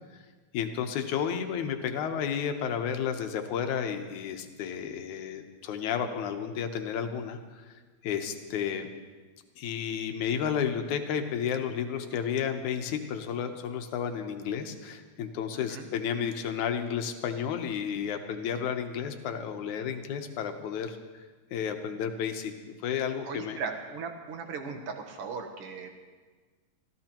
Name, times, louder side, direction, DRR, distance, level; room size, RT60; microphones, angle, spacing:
voice 1, 0.5-8.9 9.6-21.2 21.5-23.6, left 8 dB, 75° left, 6 dB, 2.3 m, -32 dB
voice 2, 15.5-15.9 23.2-25.9, right 5 dB, 60° right, 4 dB, 1.8 m, -38 dB
26.0 x 14.0 x 3.0 m, 1.4 s
omnidirectional pair, 3.5 m